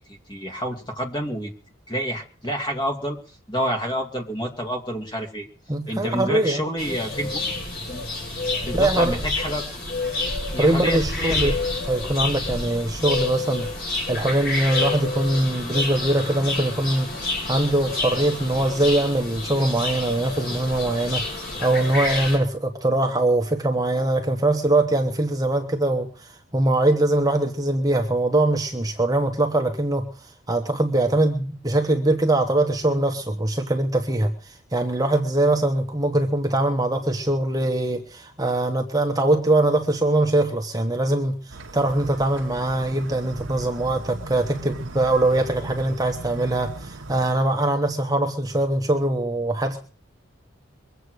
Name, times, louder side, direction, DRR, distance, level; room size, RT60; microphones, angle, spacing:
voice 1, 0.0-1.5 1.9-3.2 3.5-5.5 5.9-7.3 7.9-8.1 8.6-9.6 10.5-11.6, equal, 25° left, 3 dB, 2.6 m, -28 dB
voice 2, 5.7-6.6 8.7-9.1 10.6-11.5 11.9-13.7 14.1-17.1 17.5-26.3 26.5-30.1 30.5-49.8, right 1 dB, 20° right, 4 dB, 1.2 m, -22 dB
sound 1, 6.8-22.4, left 2 dB, 50° left, 7.1 m, -29 dB
sound 2, 41.5-47.3, right 2 dB, 80° right, 1.1 m, -38 dB
23.0 x 8.2 x 6.4 m, 0.39 s
head